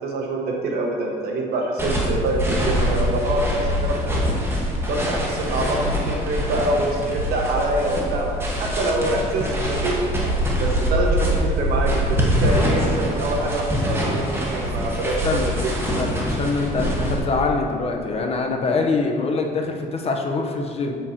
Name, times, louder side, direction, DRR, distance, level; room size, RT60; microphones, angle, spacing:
voice 1, 0.0-4.4 4.9-10.1 10.6-14.2 14.5-15.1 15.6-15.7, right 2 dB, 70° right, 0 dB, 1.3 m, -25 dB
sound 1, 1.8-17.2, equal, 15° right, 1.3 m, -24 dB
voice 2, 15.2-15.6 16.0-21.0, left 3 dB, 35° left, 2 dB, 0.8 m, -24 dB
7.3 x 7.0 x 2.8 m, 2.3 s
cardioid pair, 110°, 17 cm